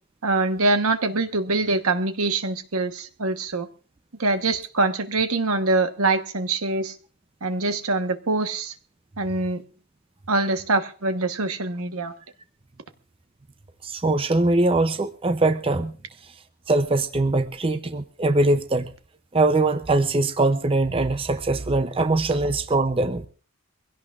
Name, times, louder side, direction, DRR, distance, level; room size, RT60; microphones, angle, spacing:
voice 1, 0.2-3.7 4.2-6.9 7.4-8.7 9.2-9.6 10.3-12.1, right 3 dB, 75° right, 8 dB, 1.2 m, -24 dB
voice 2, 13.8-15.9 16.2-16.4 16.7-18.9 19.3-23.3, right 2 dB, 25° right, 10 dB, 0.6 m, -22 dB
23.0 x 16.5 x 2.5 m, 0.38 s
head